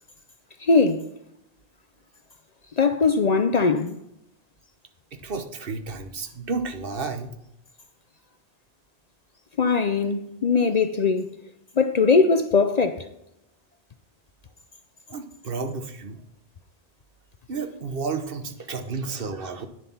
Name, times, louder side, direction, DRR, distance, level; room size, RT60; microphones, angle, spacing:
voice 1, 0.6-1.0 2.8-4.0 9.6-11.3 11.8-13.1, left 4 dB, 45° left, 0.6 m, -20 dB
voice 2, 5.2-7.3 15.1-16.2 17.5-19.7, right 4 dB, 65° right, 1.2 m, -31 dB
9.6 x 7.3 x 5.6 m
omnidirectional pair, 1.0 m